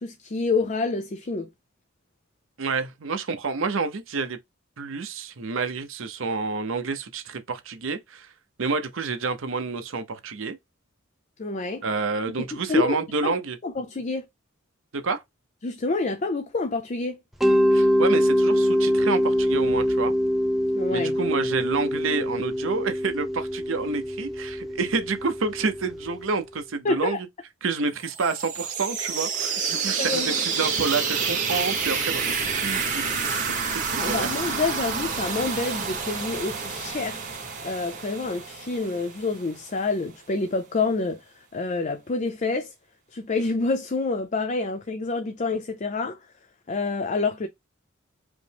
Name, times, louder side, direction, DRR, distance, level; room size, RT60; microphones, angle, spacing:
voice 1, 0.0-1.5 11.4-11.8 12.4-13.0 13.2-13.4 13.6-14.2 15.6-17.2 20.7-21.1 26.8-27.2 30.0-30.4 33.9-37.3 37.6-41.2 41.5-42.7 43.1-46.2 46.7-47.5, left 3 dB, 40° left, 0.5 m, -27 dB
voice 2, 2.6-4.4 4.8-8.3 8.6-10.6 11.8-13.6 14.9-15.2 17.7-20.1 20.9-27.3 27.6-33.2 33.5-33.6 33.9-34.3, right 4 dB, 75° right, 0.7 m, -29 dB
Mallet percussion, 17.4-26.2, equal, ahead, 0.7 m, -24 dB
sound 1, 28.0-39.7, right 5 dB, 40° right, 1.1 m, -29 dB
5.0 x 2.0 x 3.4 m
head